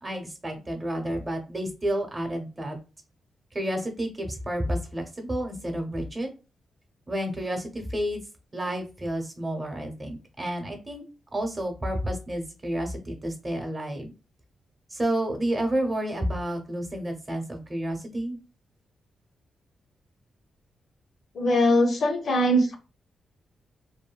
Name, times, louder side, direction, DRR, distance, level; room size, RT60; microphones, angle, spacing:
voice 1, 0.0-2.8 3.5-6.3 7.1-8.2 8.5-11.0 11.3-14.1 14.9-18.4, right 1 dB, 25° right, 3 dB, 0.8 m, -30 dB
voice 2, 21.3-22.8, equal, 60° left, 5 dB, 0.6 m, -21 dB
2.6 x 2.6 x 2.2 m, 0.31 s
cardioid pair, 120°, 0 cm